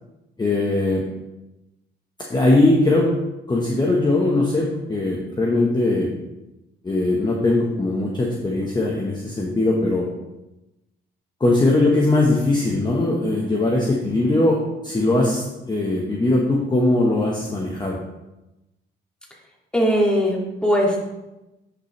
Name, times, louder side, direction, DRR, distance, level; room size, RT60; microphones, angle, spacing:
voice 1, 0.4-1.0 2.3-3.1 3.5-6.1 6.8-10.1 11.4-18.0, left 2 dB, 20° left, -2 dB, 1.2 m, -20 dB
voice 2, 19.7-21.0, equal, 5° left, -3 dB, 2.3 m, -19 dB
10.0 x 5.7 x 3.3 m, 0.97 s
cardioid pair, 90°, 20 cm